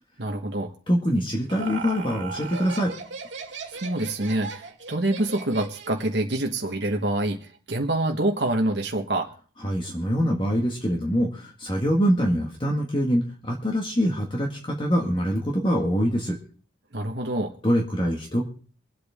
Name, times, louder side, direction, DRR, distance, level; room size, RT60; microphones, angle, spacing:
voice 1, 0.2-0.7 3.7-9.3 16.9-17.5, right 1 dB, 60° right, 2 dB, 1.3 m, -26 dB
voice 2, 0.9-2.9 9.6-16.4 17.6-18.4, equal, 25° left, 0 dB, 1.8 m, -24 dB
Laughter, 1.0-6.2, right 4 dB, 75° right, 2.3 m, -37 dB
24.0 x 8.3 x 3.6 m, 0.42 s
head